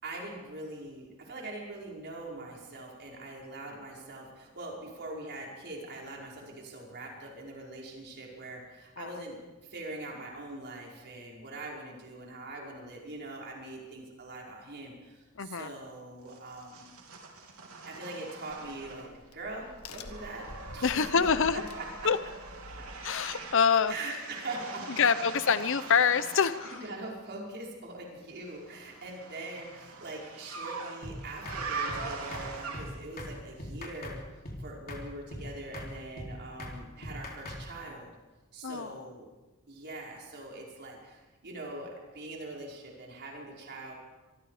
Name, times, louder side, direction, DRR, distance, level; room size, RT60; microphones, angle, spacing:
voice 1, 0.0-16.9 17.9-22.1 22.8-22.9 23.9-25.0 26.3-38.1 38.5-39.3 39.7-43.9, right 2 dB, 55° right, -2 dB, 5.4 m, -42 dB
voice 2, 15.4-15.7 20.8-21.6 22.0-22.2 23.0-23.9 25.0-26.8 38.6-38.9, left 6 dB, 65° left, 13 dB, 0.8 m, -26 dB
sound 1, 16.3-19.3 19.6-26.9 28.5-33.2, right 4 dB, 85° right, 3.3 m, -42 dB
Crack, 18.5-23.9, left 2 dB, 85° left, 1.8 m, -48 dB
sound 2, 31.0-31.2 31.5-31.6 31.9-32.0 32.3-32.5 32.7-32.9 33.2-33.3 33.6-34.2 34.4-34.6 34.9-35.0 35.3-35.5 35.7-35.9 36.2-36.3 36.6-36.8 37.0-37.6, left 1 dB, 45° left, 3.8 m, -40 dB
25.0 x 23.0 x 5.0 m, 1.2 s
head